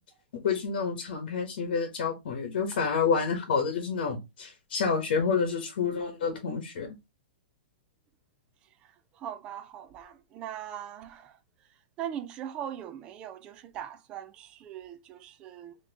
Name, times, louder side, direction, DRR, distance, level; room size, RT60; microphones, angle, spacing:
voice 1, 0.4-6.9, left 5 dB, 50° left, 1.1 m, -28 dB
voice 2, 9.2-11.4 12.0-15.8, right 10 dB, 15° right, 0.3 m, -40 dB
4.2 x 2.9 x 2.8 m
hypercardioid pair, 175°, 6 cm